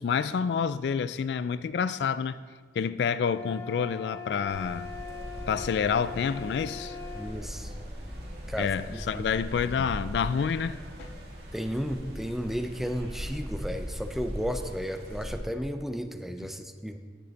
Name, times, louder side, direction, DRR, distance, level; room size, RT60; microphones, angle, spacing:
voice 1, 0.0-2.4 2.8-4.9 5.5-7.0 8.6-11.1, left 6 dB, 70° left, 0.3 m, -28 dB
sound 1, 3.2-7.4, left 5 dB, 15° left, 1.1 m, -42 dB
sound 2, 4.5-15.4, equal, 60° right, 2.0 m, -40 dB
voice 2, 7.1-7.7 8.5-9.2 11.5-17.0, equal, ahead, 0.5 m, -33 dB
9.9 x 9.4 x 4.0 m
head